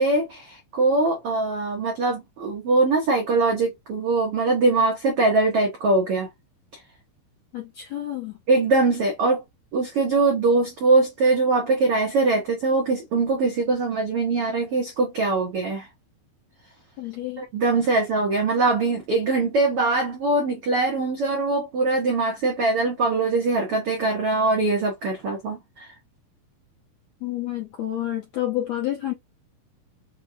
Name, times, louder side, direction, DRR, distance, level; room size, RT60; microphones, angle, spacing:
voice 1, 0.0-6.3 8.5-9.4 9.7-15.9 17.4-25.9, right 3 dB, 85° right, 1.2 m, -22 dB
voice 2, 7.5-8.4 17.0-17.4 27.2-29.1, left 13 dB, 70° left, 1.6 m, -29 dB
6.5 x 2.3 x 2.6 m
omnidirectional pair, 4.3 m